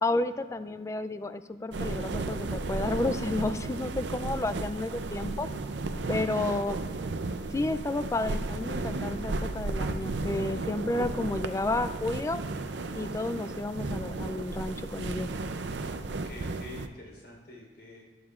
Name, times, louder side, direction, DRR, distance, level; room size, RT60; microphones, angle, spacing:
voice 1, 0.0-5.5 6.1-6.8 7.5-12.4 12.9-15.3, left 2 dB, 15° left, 12 dB, 0.3 m, -31 dB
sound 1, 1.7-16.9, right 3 dB, 80° right, 0.6 m, -34 dB
voice 2, 4.3-4.8 16.2-18.0, left 2 dB, 80° left, -2 dB, 3.8 m, -47 dB
14.5 x 11.5 x 2.5 m, 1.3 s
head